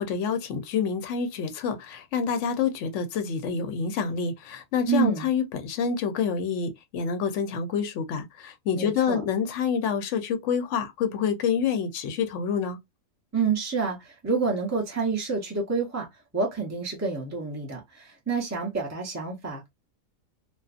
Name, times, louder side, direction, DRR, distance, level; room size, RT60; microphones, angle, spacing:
voice 1, 0.0-12.8, left 6 dB, 65° left, 0.9 m, -27 dB
voice 2, 4.9-5.3 8.7-9.2 13.3-16.1 16.3-19.7, right 5 dB, 20° right, 0.4 m, -28 dB
2.5 x 2.4 x 2.4 m
omnidirectional pair, 1.4 m